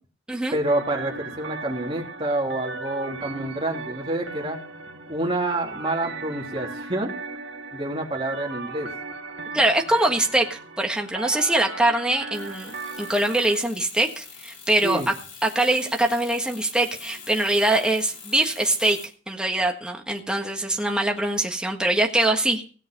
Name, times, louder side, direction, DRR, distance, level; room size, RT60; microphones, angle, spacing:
voice 1, 0.5-4.6 5.1-7.1 7.7-8.9 14.8-15.1, right 1 dB, 30° right, 0 dB, 2.8 m, -27 dB
sound 1, 0.7-13.6, right 4 dB, 85° right, 1.8 m, -37 dB
voice 2, 9.5-12.7 13.0-15.1 15.4-19.0 19.3-22.6, right 1 dB, 5° right, 1 dB, 1.5 m, -23 dB
sound 2, 12.3-19.1, left 6 dB, 75° left, 4.0 m, -44 dB
17.0 x 7.8 x 5.2 m, 0.40 s
head